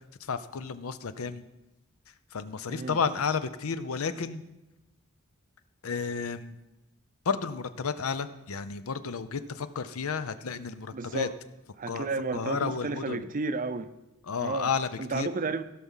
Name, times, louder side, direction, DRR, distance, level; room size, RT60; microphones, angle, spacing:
voice 1, 0.3-1.4 2.3-4.4 5.8-6.5 7.3-11.3 11.9-12.1 12.3-13.3 14.3-15.3, left 5 dB, 85° left, 0.6 m, -32 dB
voice 2, 10.9-11.4 11.8-13.9 14.4-14.7 15.0-15.6, right 3 dB, 40° right, 0.5 m, -32 dB
16.0 x 6.0 x 5.6 m
head